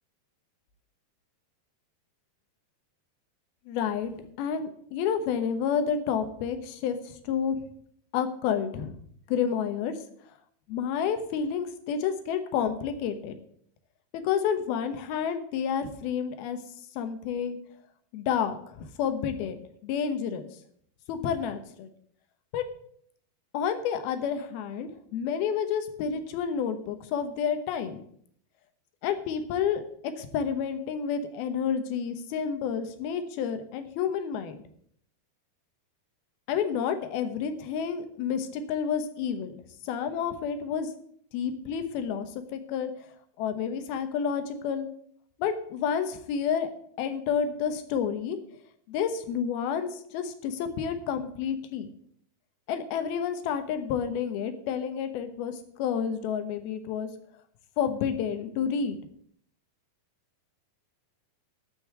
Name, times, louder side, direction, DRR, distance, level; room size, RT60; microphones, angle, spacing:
voice 1, 3.7-7.6 8.1-9.0 9.3-9.9 10.7-13.4 14.1-16.6 17.0-17.6 18.1-20.5 21.1-21.9 22.5-22.6 23.5-28.0 29.0-34.6 36.5-39.5 39.8-40.9 41.3-42.9 43.4-44.9 45.4-46.7 47.0-48.4 48.9-51.9 52.7-57.1 57.8-59.0, left 7 dB, 75° left, 9 dB, 2.9 m, -30 dB
12.5 x 5.5 x 8.1 m, 0.64 s
omnidirectional pair, 4.6 m